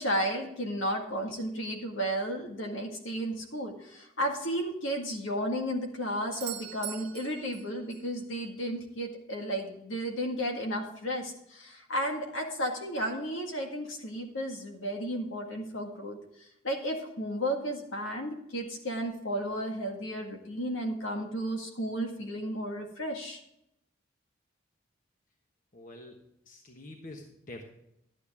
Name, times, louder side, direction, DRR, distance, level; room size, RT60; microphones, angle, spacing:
voice 1, 0.0-16.2 16.6-23.4, equal, 70° left, 2 dB, 1.9 m, -33 dB
Doorbell, 6.3-8.2 12.2-12.3, right 12 dB, 50° right, 0.8 m, -42 dB
voice 2, 25.7-27.6, left 1 dB, 40° left, 2 dB, 1.2 m, -47 dB
12.0 x 9.3 x 3.6 m, 0.80 s
head